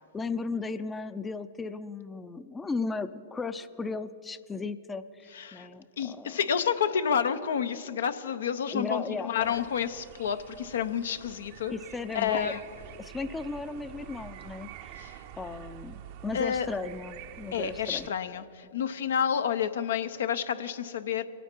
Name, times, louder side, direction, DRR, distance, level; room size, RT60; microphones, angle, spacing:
voice 1, 0.1-6.4 8.7-9.3 11.7-12.5 13.0-15.0 15.4-18.1, left 4 dB, 15° left, 12 dB, 0.4 m, -36 dB
voice 2, 5.3-5.7 6.0-11.7 12.1-12.6 15.0-15.2 16.3-16.7 17.5-21.2, left 8 dB, 80° left, 11 dB, 0.6 m, -29 dB
sound 1, 9.3-18.1, right 11 dB, 55° right, 0.6 m, -47 dB
23.5 x 9.1 x 4.5 m, 2.6 s
hypercardioid pair, 115°, 0 cm